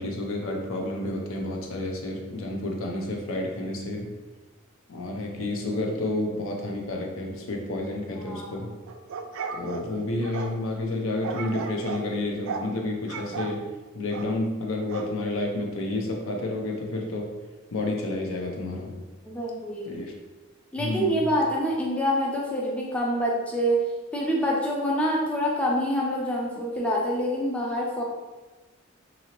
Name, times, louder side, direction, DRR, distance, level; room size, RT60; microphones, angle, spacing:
voice 1, 0.0-4.1 4.9-8.7 9.5-17.4 17.7-19.0 19.9-20.1 20.8-21.3, left 2 dB, 65° left, 1 dB, 0.5 m, -30 dB
voice 2, 8.2-8.6 19.3-20.0 20.7-23.8 24.1-28.0, equal, 5° left, -3 dB, 0.4 m, -26 dB
sound 1, 8.9-10.5 11.2-12.1 12.4-12.7 13.1-13.6 14.1-14.3 14.9-15.1, right 5 dB, 70° right, 0.3 m, -35 dB
2.9 x 2.7 x 2.9 m, 1.2 s
head